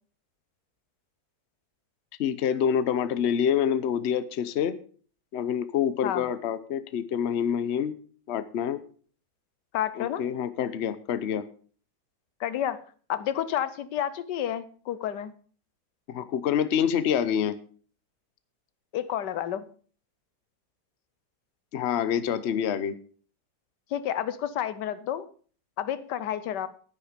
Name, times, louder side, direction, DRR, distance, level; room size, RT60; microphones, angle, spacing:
voice 1, 2.2-4.7 5.3-7.9 8.3-8.8 10.0-11.4 16.1-17.6 21.7-23.0, left 8 dB, 50° left, 13 dB, 0.9 m, -27 dB
voice 2, 9.7-10.2 12.4-12.8 13.1-15.3 18.9-19.6 23.9-25.2 25.8-26.7, left 10 dB, 85° left, 15 dB, 1.4 m, -30 dB
10.0 x 10.0 x 5.1 m, 0.43 s
omnidirectional pair, 1.8 m